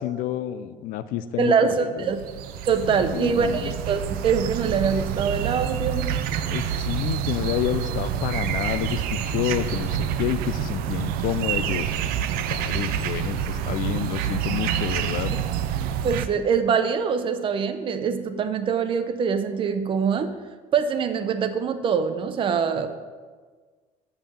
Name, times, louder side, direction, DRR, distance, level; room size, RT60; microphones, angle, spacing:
voice 1, 0.0-2.1 2.9-3.7 6.4-11.9 12.5-15.3, left 12 dB, 65° left, 12 dB, 0.5 m, -29 dB
voice 2, 1.4-2.2 2.7-6.1 16.0-20.3 20.7-22.9, right 6 dB, 35° right, 9 dB, 0.6 m, -24 dB
sound 1, 2.0-16.3, right 9 dB, 90° right, 0.5 m, -27 dB
7.2 x 5.6 x 6.9 m, 1.4 s
cardioid pair, 165°, 15 cm